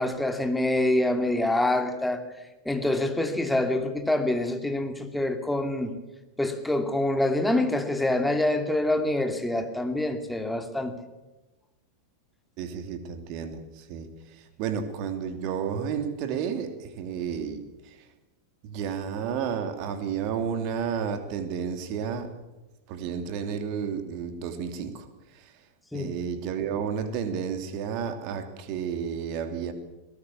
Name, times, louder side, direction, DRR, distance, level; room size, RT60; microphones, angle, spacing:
voice 1, 0.0-2.2 2.6-5.9 6.4-10.9 25.9-26.1, left 1 dB, 5° left, 6 dB, 2.5 m, -26 dB
voice 2, 12.6-18.1 18.6-22.3 22.9-25.1 25.3-25.5 25.9-29.7, right 7 dB, 45° right, 8 dB, 2.8 m, -32 dB
22.0 x 18.5 x 7.1 m, 1.1 s
figure-of-eight pair, 90°, 0 cm